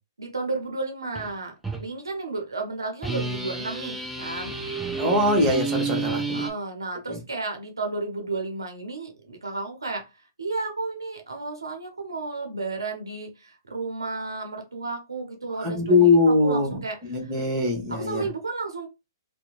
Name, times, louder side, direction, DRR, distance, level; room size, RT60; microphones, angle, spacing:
voice 1, 0.2-4.5 6.3-10.1 10.4-16.1 16.4-17.3 17.9-18.9, right 3 dB, 90° right, 4 dB, 0.6 m, -32 dB
sound 1, 1.1-1.3 1.6-1.8 3.0-6.5, right 3 dB, 5° right, 0.4 m, -30 dB
voice 2, 5.0-6.4 7.1-7.2 15.6-16.8 17.1-18.3, left 2 dB, 30° right, 0 dB, 1.1 m, -22 dB
2.8 x 2.1 x 2.3 m, 0.25 s
hypercardioid pair, 125°, 2 cm